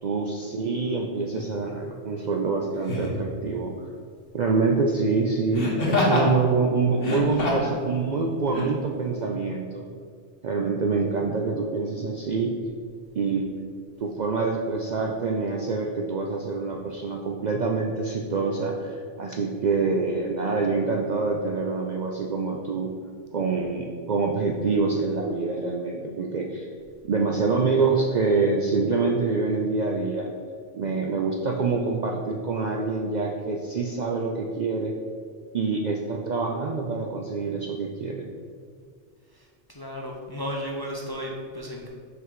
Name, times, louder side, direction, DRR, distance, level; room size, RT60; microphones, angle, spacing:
voice 1, 0.0-3.7 4.3-9.8 10.4-12.5 13.1-13.5 14.0-22.9 23.3-26.7 27.1-30.3 30.7-34.9 35.5-38.3, right 4 dB, 55° right, 0 dB, 0.5 m, -26 dB
Laughter, 1.3-1.5 2.8-3.2 5.5-6.3 6.9-7.8 8.5-8.7, left 2 dB, 55° left, 1.3 m, -25 dB
voice 2, 39.3-41.9, equal, 30° left, -2 dB, 0.5 m, -34 dB
5.7 x 3.8 x 4.7 m, 2.1 s
omnidirectional pair, 1.2 m